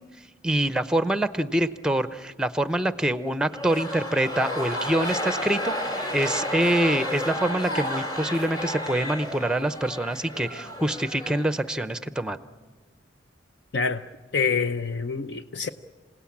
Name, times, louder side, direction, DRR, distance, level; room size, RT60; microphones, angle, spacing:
voice 1, 0.4-12.4, right 1 dB, 5° right, 0.7 m, -25 dB
sound 1, 3.5-11.9, left 1 dB, 25° left, 2.4 m, -31 dB
voice 2, 14.3-15.7, left 5 dB, 65° left, 0.7 m, -26 dB
27.0 x 17.5 x 8.6 m
head